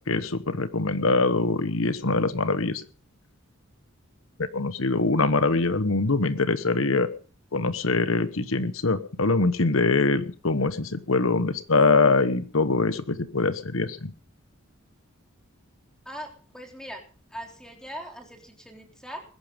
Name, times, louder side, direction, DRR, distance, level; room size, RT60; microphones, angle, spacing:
voice 1, 0.1-2.8 4.4-7.1 7.5-14.1, left 3 dB, 80° left, 12 dB, 1.2 m, -23 dB
voice 2, 16.1-17.0 17.3-19.2, equal, 5° left, 3 dB, 3.5 m, -40 dB
20.5 x 11.0 x 5.2 m, 0.39 s
head